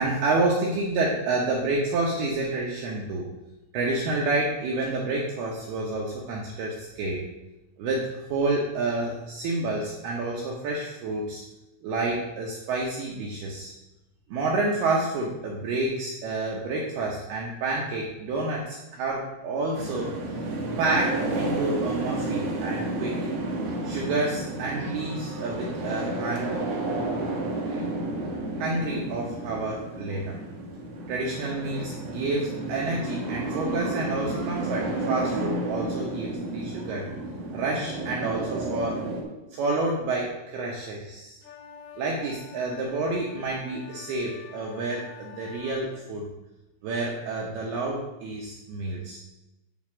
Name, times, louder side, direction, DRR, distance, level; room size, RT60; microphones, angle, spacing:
voice 1, 0.0-3.3 3.7-7.2 7.8-11.4 11.8-13.7 14.3-20.1 20.8-23.2 23.8-26.5 27.7-27.9 28.6-30.3 31.1-37.1 37.5-39.0 39.5-41.4 42.0-46.3 46.8-49.2, right 2 dB, 75° right, -2 dB, 2.3 m, -29 dB
sound 1, 19.7-39.2, right 2 dB, 60° right, 2.8 m, -31 dB
sound 2, 41.4-45.9, left 7 dB, 70° left, 2.9 m, -47 dB
9.3 x 4.3 x 7.3 m, 0.99 s
omnidirectional pair, 5.9 m